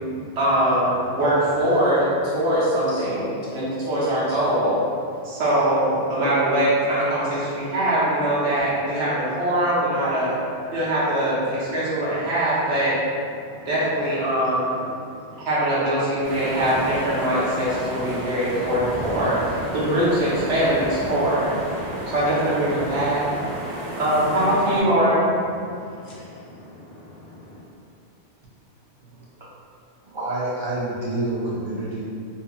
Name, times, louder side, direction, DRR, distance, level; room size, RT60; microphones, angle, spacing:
voice 1, 0.4-4.7 5.2-10.4 10.7-13.0 13.7-14.8 15.4-19.4 19.7-21.5 22.1-23.3 24.0-25.3, right 1 dB, 90° right, -9 dB, 1.1 m, -22 dB
voice 2, 15.0-15.4 21.8-22.1 23.7-24.0 25.7-27.6, left 1 dB, 65° left, -8 dB, 1.1 m, -45 dB
sound 1, 16.2-24.8, equal, 60° right, 1.1 m, -31 dB
voice 3, 29.1-29.5 30.0-32.0, right 2 dB, 40° right, -8 dB, 0.4 m, -28 dB
2.8 x 2.5 x 2.3 m, 2.4 s
omnidirectional pair, 1.2 m